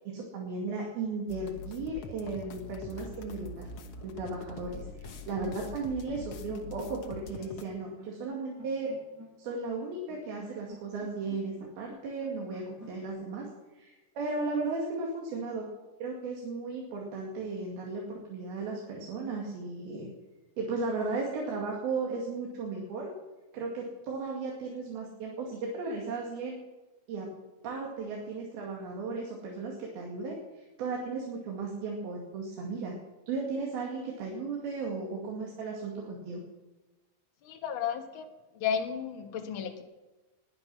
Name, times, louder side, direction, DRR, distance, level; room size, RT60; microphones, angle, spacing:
voice 1, 0.1-3.7 4.0-8.9 9.4-13.5 13.7-15.7 16.0-20.1 20.6-23.1 23.5-26.6 27.1-27.3 27.6-33.0 33.3-36.4, right 3 dB, 85° right, -1 dB, 4.1 m, -35 dB
sound 1, 1.3-7.6, left 4 dB, 80° left, 1.2 m, -44 dB
sound 2, 2.8-13.1, right 1 dB, 20° right, 0.5 m, -52 dB
voice 2, 37.4-38.3 38.5-39.8, left 7 dB, 50° left, 5 dB, 1.6 m, -33 dB
20.0 x 9.6 x 6.2 m, 1.1 s
omnidirectional pair, 4.2 m